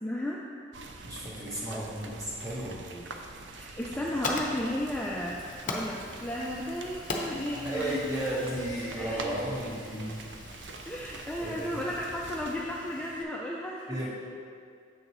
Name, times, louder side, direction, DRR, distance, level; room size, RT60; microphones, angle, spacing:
voice 1, 0.0-0.4 1.7-1.8 2.9-3.1 3.5-8.2 8.9-9.5 10.9-13.9, left 1 dB, 5° left, -4 dB, 0.4 m, -34 dB
Rain by the creek, 0.7-12.6, right 3 dB, 70° right, 0.5 m, -45 dB
voice 2, 1.0-2.8 7.5-10.2 11.4-11.7 13.9-14.1, right 1 dB, 20° right, -6 dB, 1.4 m, -34 dB
Fire, 3.8-13.2, left 2 dB, 45° left, 0.6 m, -41 dB
7.1 x 6.4 x 3.0 m, 2.2 s
head